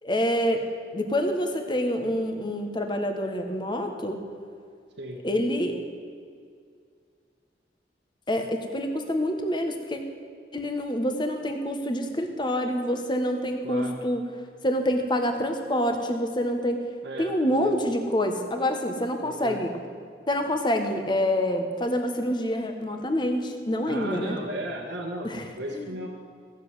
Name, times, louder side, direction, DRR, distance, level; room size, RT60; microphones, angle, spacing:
voice 1, 0.0-0.6 0.9-4.2 5.2-5.8 8.3-10.0 10.5-14.2 14.6-16.8 17.2-19.7 20.3-24.4 25.2-25.4 25.7-25.9, equal, 25° left, 5 dB, 1.4 m, -27 dB
voice 2, 13.6-14.0 17.0-17.3 17.6-17.7 19.2-19.6 23.9-26.1, right 1 dB, 90° right, -4 dB, 1.5 m, -35 dB
15.5 x 7.3 x 9.6 m, 2.2 s
head